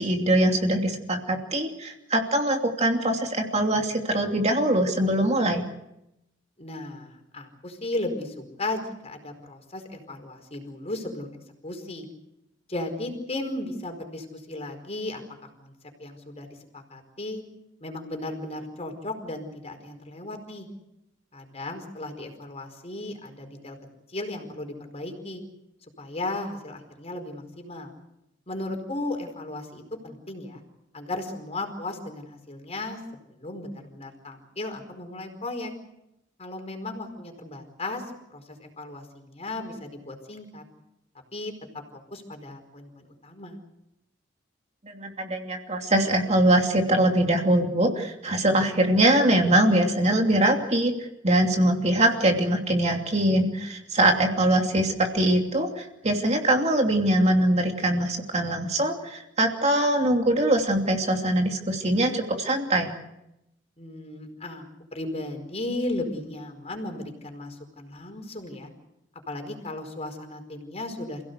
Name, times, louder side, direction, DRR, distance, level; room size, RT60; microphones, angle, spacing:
voice 1, 0.0-5.6 44.8-62.9, right 1 dB, 35° right, 3 dB, 2.8 m, -23 dB
voice 2, 6.6-11.3 11.6-12.1 12.7-15.2 15.6-15.7 16.0-16.5 16.7-17.4 17.8-20.7 21.3-23.8 24.1-25.4 26.0-27.9 28.5-30.6 30.9-33.0 33.3-35.7 36.4-40.6 41.3-41.8 42.1-43.6 63.8-68.7 69.3-71.2, left 2 dB, 35° left, 5 dB, 4.8 m, -35 dB
28.5 x 17.0 x 8.2 m, 0.87 s
head